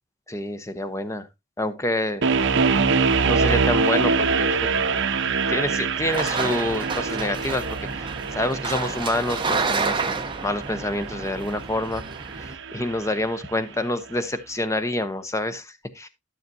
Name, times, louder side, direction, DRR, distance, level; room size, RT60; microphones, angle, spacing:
voice 1, 0.3-1.3 1.6-2.2 3.3-5.0 5.5-7.6 7.9-12.0 12.3-16.1, left 1 dB, 15° left, 0.7 m, -27 dB
sound 1, 2.2-13.3, right 4 dB, 60° right, 0.8 m, -25 dB
sound 2, 6.1-12.5, right 4 dB, 20° right, 0.8 m, -30 dB
12.0 x 6.6 x 2.7 m
head